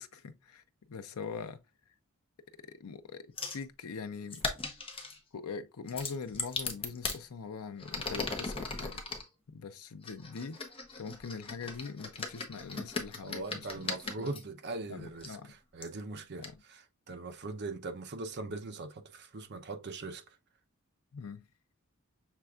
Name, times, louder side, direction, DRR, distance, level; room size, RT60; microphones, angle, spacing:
voice 1, 0.0-1.6 2.8-4.4 5.3-9.0 9.5-10.6 11.0-13.9 14.2-14.3 14.9-15.5 16.4-16.5 21.1-21.5, left 5 dB, 80° left, 0.5 m, -42 dB
sound 1, 3.4-3.6 4.3-5.2 5.9-7.2 7.8-9.2 10.0-14.4 15.2-15.3 15.8-15.9 16.4-16.5, left 3 dB, 25° left, 0.9 m, -38 dB
voice 2, 13.2-20.2, right 3 dB, 50° right, 0.7 m, -41 dB
6.6 x 3.4 x 2.4 m
head